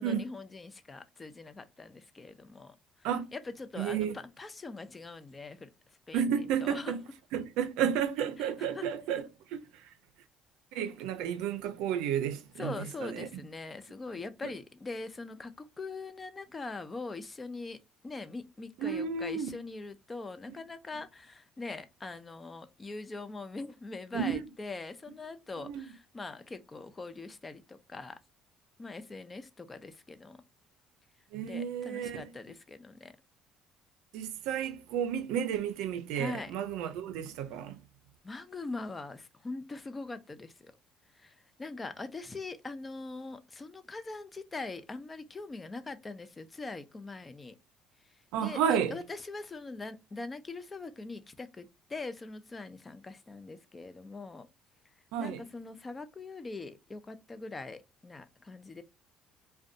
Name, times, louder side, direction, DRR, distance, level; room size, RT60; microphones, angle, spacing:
voice 1, 0.0-7.0 8.4-8.9 12.6-17.8 18.0-28.2 28.8-30.4 31.4-33.2 36.1-36.5 38.2-40.7 41.1-47.6 48.4-54.5 55.2-58.8, left 3 dB, 20° left, 0.4 m, -42 dB
voice 2, 3.8-4.1 6.1-7.0 7.3-9.8 10.7-12.7 13.0-13.3 18.8-19.5 24.1-24.5 25.6-25.9 31.3-32.3 34.1-37.8 48.3-49.0 55.1-55.4, right 8 dB, 85° right, 0.4 m, -32 dB
2.5 x 2.2 x 2.4 m
cardioid pair, 110°, 0 cm